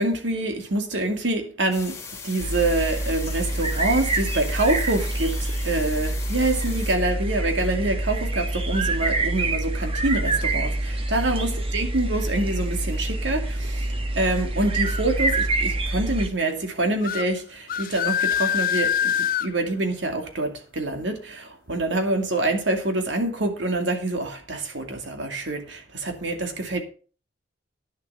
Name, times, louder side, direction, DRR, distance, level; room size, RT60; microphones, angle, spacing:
voice 1, 0.0-2.0 2.2-26.8, right 2 dB, 75° right, 2.2 m, -26 dB
sound 1, 1.7-6.9, left 5 dB, 15° left, 2.4 m, -39 dB
sound 2, 2.4-16.3, right 2 dB, 30° right, 1.2 m, -26 dB
sound 3, 17.0-17.3 17.7-19.5, left 9 dB, 50° left, 0.4 m, -24 dB
10.5 x 7.0 x 5.4 m
head